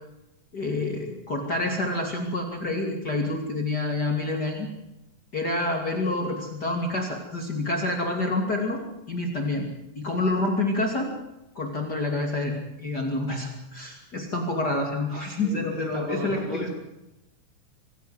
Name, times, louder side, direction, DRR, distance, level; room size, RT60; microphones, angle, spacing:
voice 1, 0.5-4.7 5.3-8.8 9.1-9.6 10.0-11.1 11.5-16.7, left 2 dB, 30° left, 1 dB, 2.9 m, -28 dB
voice 2, 15.4-16.7, right 1 dB, 25° right, 1 dB, 4.2 m, -34 dB
26.0 x 15.5 x 7.9 m, 0.91 s
omnidirectional pair, 3.7 m